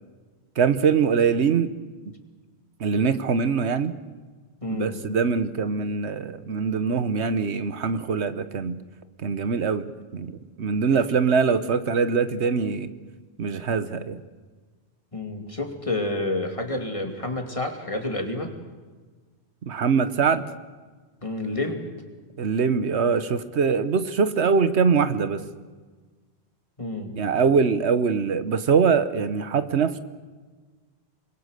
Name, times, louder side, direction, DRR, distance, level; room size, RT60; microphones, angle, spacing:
voice 1, 0.6-1.7 2.8-3.9 4.7-8.8 9.2-10.3 10.6-12.9 13.4-14.2 19.6-20.5 22.4-25.4 27.2-30.0, right 5 dB, 80° right, 12 dB, 1.3 m, -23 dB
voice 2, 4.6-5.0 15.1-18.5 21.2-21.9 26.8-27.1, left 2 dB, 30° left, 4 dB, 2.7 m, -29 dB
25.5 x 22.0 x 6.6 m, 1.4 s
omnidirectional pair, 1.1 m